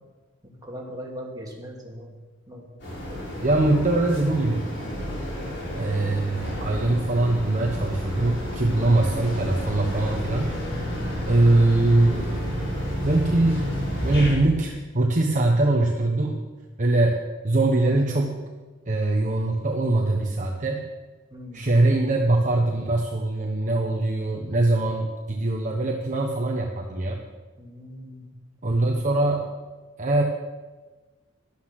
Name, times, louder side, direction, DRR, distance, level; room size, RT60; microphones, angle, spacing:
voice 1, 0.4-2.2 2.5-2.7 3.1-3.3 11.2-11.5 21.3-21.7 27.6-28.3, equal, 20° right, -2 dB, 2.8 m, -40 dB
sound 1, 2.8-14.3, equal, 60° left, 5.3 m, -30 dB
voice 2, 3.4-4.7 5.7-10.5 11.3-12.6 13.0-13.6 14.0-16.4 16.8-18.4 18.9-20.8 21.5-27.2 28.6-29.4 30.0-30.2, right 2 dB, 40° right, 1 dB, 1.1 m, -22 dB
12.5 x 12.0 x 6.0 m, 1.3 s
head